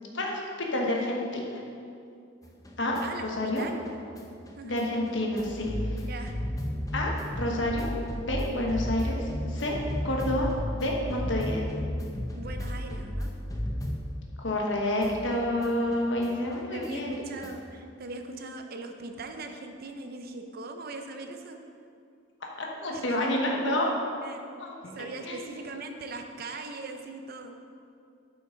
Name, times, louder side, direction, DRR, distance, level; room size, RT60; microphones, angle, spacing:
voice 1, 0.7-1.4 2.8-3.0 3.2-3.6 4.6-5.7 6.9-7.1 7.4-7.9 8.3-9.8 10.0-11.7 14.4-17.2 22.6-23.9 24.6-25.4, left 1 dB, 65° left, -1 dB, 1.2 m, -29 dB
sound 1, 2.4-14.7 15.0-17.8, left 1 dB, 20° left, 0.6 m, -35 dB
voice 2, 3.0-3.8 4.6-4.7 5.9-6.3 12.3-13.3 16.7-21.6 22.9-23.4 24.2-24.4 24.9-27.5, right 3 dB, 50° right, 5 dB, 0.6 m, -40 dB
8.6 x 5.8 x 3.8 m, 2.4 s
head